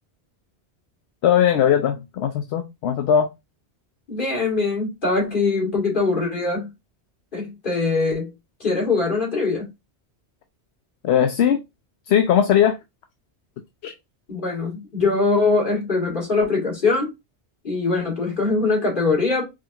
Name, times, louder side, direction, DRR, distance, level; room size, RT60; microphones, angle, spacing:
voice 1, 1.2-3.3 11.0-11.6 12.1-12.8 13.8-13.9, left 9 dB, 70° left, 0.8 m, -19 dB
voice 2, 4.1-6.7 7.3-8.3 8.6-9.7 14.3-17.1 17.6-19.4, left 3 dB, 50° left, 2.3 m, -22 dB
5.0 x 2.5 x 2.8 m
omnidirectional pair, 1.1 m